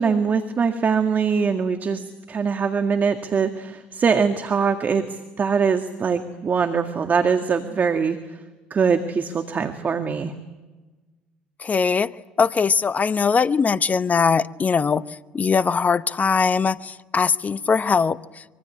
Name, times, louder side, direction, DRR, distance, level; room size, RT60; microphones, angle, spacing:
voice 1, 0.0-8.2 8.7-10.3, right 5 dB, 40° right, 7 dB, 2.0 m, -22 dB
voice 2, 11.6-12.1 12.4-18.4, left 5 dB, 35° left, 16 dB, 1.0 m, -21 dB
25.0 x 24.0 x 8.9 m, 1.2 s
hypercardioid pair, 60°, 5 cm